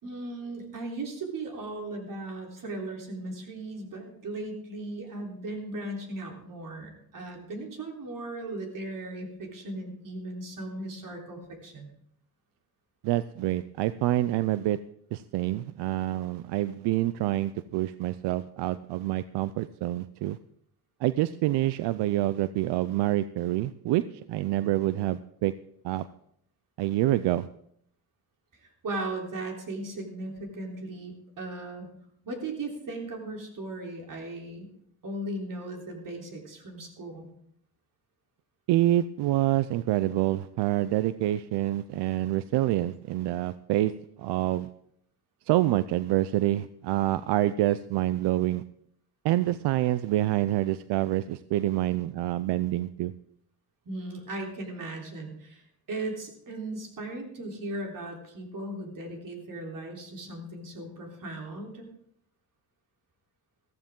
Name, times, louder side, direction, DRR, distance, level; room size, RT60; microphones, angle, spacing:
voice 1, 0.0-11.9 28.5-31.9 32.2-34.7 35.0-37.3 53.9-61.9, right 2 dB, 55° right, 1 dB, 3.6 m, -37 dB
voice 2, 13.0-14.8 15.1-20.4 21.0-24.0 24.3-25.5 25.8-26.1 26.8-27.5 38.7-43.9 44.2-44.7 45.5-48.6 49.2-53.1, right 15 dB, 90° right, 14 dB, 0.6 m, -27 dB
14.5 x 14.0 x 3.7 m, 0.69 s
cardioid pair, 110°, 39 cm